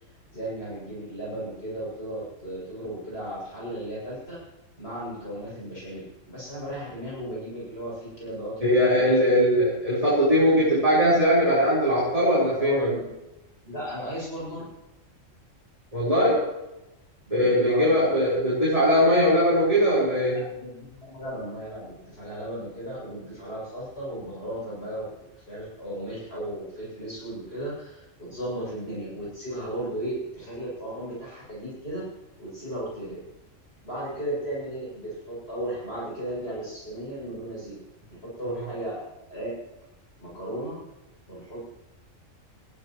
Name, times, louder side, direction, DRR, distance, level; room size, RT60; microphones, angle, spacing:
voice 1, 0.3-4.4 4.8-8.6 8.9-9.3 10.0-10.2 12.5-13.1 13.6-14.6 17.3-18.2 20.3-32.1 32.4-33.2 33.8-37.8 38.1-39.0 39.3-39.5 40.2-40.8 41.3-41.6, right 1 dB, 50° left, -7 dB, 7.4 m, -35 dB
voice 2, 8.6-12.9 15.9-16.5 17.3-20.4, equal, 25° right, -8 dB, 4.5 m, -20 dB
20.5 x 15.0 x 3.1 m, 0.97 s
omnidirectional pair, 1.3 m